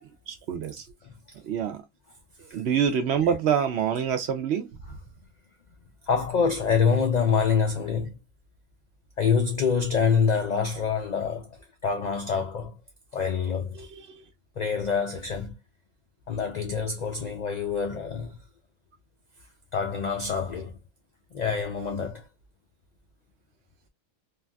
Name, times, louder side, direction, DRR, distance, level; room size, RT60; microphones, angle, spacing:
voice 1, 0.3-0.9 1.4-1.8 2.4-4.8 13.8-14.2, right 8 dB, 65° right, 0.8 m, -26 dB
voice 2, 6.0-8.2 9.2-12.8 13.1-13.9 14.6-15.6 16.3-18.4 19.7-20.8 21.3-22.3, left 6 dB, 80° left, 0.3 m, -26 dB
3.2 x 2.5 x 2.2 m
omnidirectional pair, 1.3 m